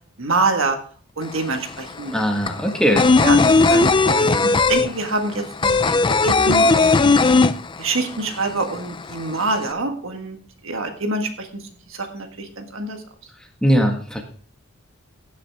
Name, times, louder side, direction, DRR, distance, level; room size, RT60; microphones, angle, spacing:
voice 1, 0.2-0.8 1.2-2.1 3.2-7.3 7.8-10.4 10.6-11.5 11.9-13.0, right 3 dB, 65° right, 5 dB, 1.6 m, -26 dB
sound 1, 1.2-1.3 1.6-8.2 8.4-8.5 8.8-9.6, left 3 dB, 25° left, 0.4 m, -16 dB
voice 2, 2.1-3.1 13.6-14.2, equal, 5° left, 2 dB, 1.7 m, -19 dB
16.0 x 7.3 x 3.5 m, 0.42 s
head